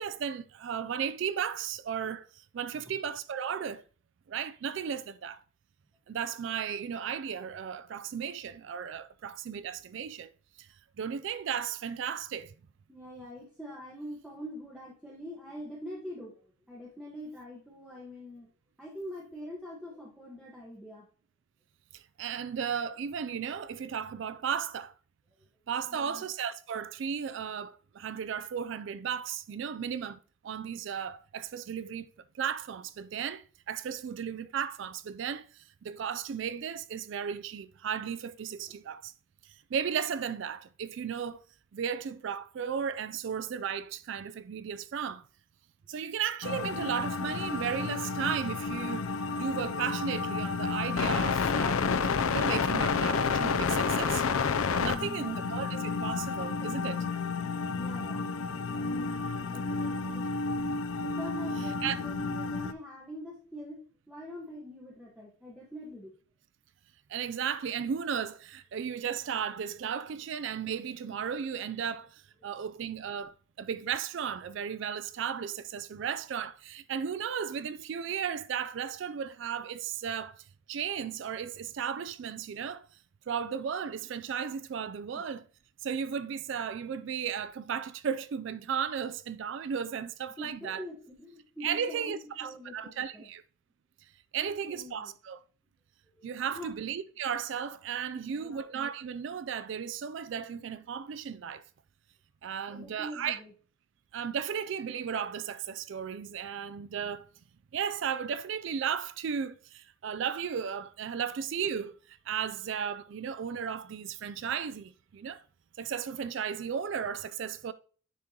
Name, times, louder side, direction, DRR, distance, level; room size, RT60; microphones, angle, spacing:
voice 1, 0.0-3.8 4.3-5.4 6.1-10.3 10.6-10.7 11.0-12.5 21.9-24.9 25.7-32.1 32.3-39.1 39.4-41.4 41.7-45.3 45.9-49.1 49.4-51.9 52.3-54.2 54.7-57.1 61.8-62.0 67.1-82.8 83.3-85.4 85.8-90.8 91.6-93.4 94.3-95.4 96.2-101.6 102.4-103.4 104.1-107.3 107.7-115.4 115.8-117.7, right 7 dB, 60° right, 0.3 m, -35 dB
voice 2, 12.9-18.5 18.8-21.1 25.9-26.2 38.7-38.8 54.9-55.5 57.7-58.3 58.7-60.3 61.0-63.8 64.1-66.1 72.4-72.5 85.1-85.2 90.4-93.3 94.4-95.1 95.6-95.7 96.1-96.7 98.0-98.6 102.7-103.5, equal, 5° right, 1.4 m, -44 dB
sound 1, 46.4-62.7, left 5 dB, 90° left, 0.5 m, -30 dB
10.0 x 3.7 x 2.9 m
head